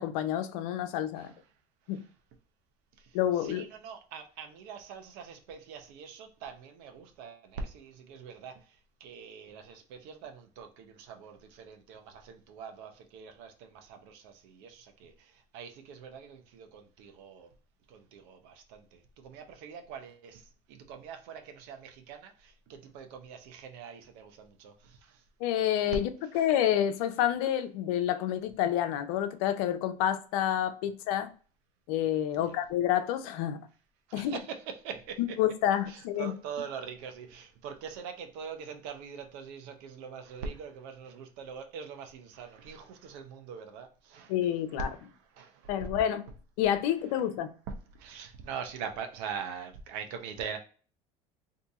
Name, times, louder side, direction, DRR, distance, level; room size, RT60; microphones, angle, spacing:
voice 1, 0.0-1.3 1.9-2.0 3.1-3.7 25.4-31.3 31.9-33.6 34.1-34.4 35.2-36.3 44.3-44.9 45.7-46.2 46.6-47.5, left 11 dB, 75° left, 0.5 m, -28 dB
voice 2, 3.4-8.5 9.0-17.5 17.9-25.2 26.3-26.4 32.3-32.5 34.1-35.2 35.9-44.3 45.4-45.9 47.9-50.6, right 6 dB, 70° right, 0.8 m, -43 dB
2.8 x 2.7 x 3.5 m
hypercardioid pair, 85°, 19 cm